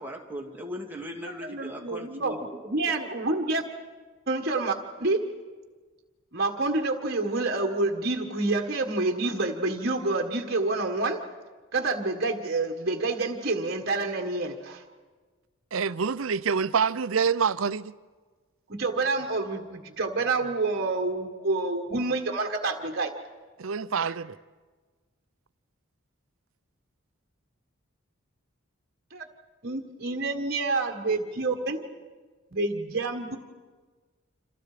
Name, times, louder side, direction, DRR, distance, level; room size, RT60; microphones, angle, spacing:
voice 1, 0.0-2.7, equal, 10° right, 2.4 m, -38 dB
voice 2, 1.4-2.4 2.7-3.6 4.3-4.7 5.0-5.3 6.3-11.2 11.7-14.8 18.7-23.1 24.0-24.1 29.1-29.2 29.6-31.8 32.5-33.4, right 3 dB, 50° right, 1.6 m, -28 dB
voice 3, 15.7-17.9 23.6-24.4, right 6 dB, 75° right, 0.6 m, -26 dB
28.0 x 27.0 x 5.0 m
head